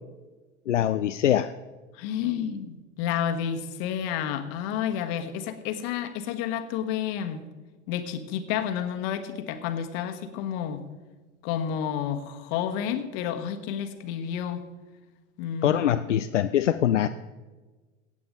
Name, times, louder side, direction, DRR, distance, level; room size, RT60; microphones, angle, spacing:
voice 1, 0.7-1.5 15.6-17.1, left 11 dB, 80° left, 10 dB, 0.5 m, -23 dB
voice 2, 1.9-7.4 7.9-10.9 11.4-14.6 15.4-15.8, left 9 dB, 55° left, 8 dB, 1.4 m, -30 dB
16.0 x 8.5 x 5.2 m, 1.2 s
figure-of-eight pair, 75°, 36 cm